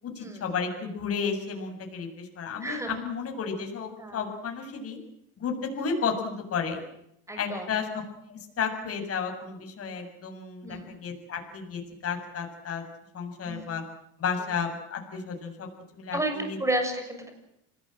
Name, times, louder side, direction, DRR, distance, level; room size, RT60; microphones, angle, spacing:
voice 1, 0.0-5.0 5.4-6.8 7.4-7.9 8.3-12.8 13.1-13.8 14.2-15.7 15.9-16.2 16.5-16.6, left 6 dB, 40° left, 3 dB, 7.3 m, -32 dB
voice 2, 2.6-2.9 4.0-4.2 7.3-7.8 10.6-10.9 13.4-13.6 16.1-17.3, right 1 dB, 10° right, 6 dB, 7.0 m, -31 dB
27.0 x 20.0 x 7.9 m, 0.79 s
cardioid pair, 120°, 36 cm